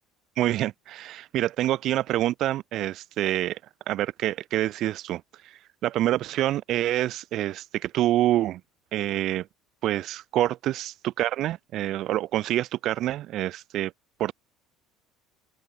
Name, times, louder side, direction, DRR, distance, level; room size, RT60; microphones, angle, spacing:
voice 1, 0.4-3.6 3.9-5.2 5.8-8.6 8.9-9.5 9.8-13.9 14.2-14.3, right 14 dB, 60° right, 0.6 m, -26 dB
open air
supercardioid pair, 100°, 0 cm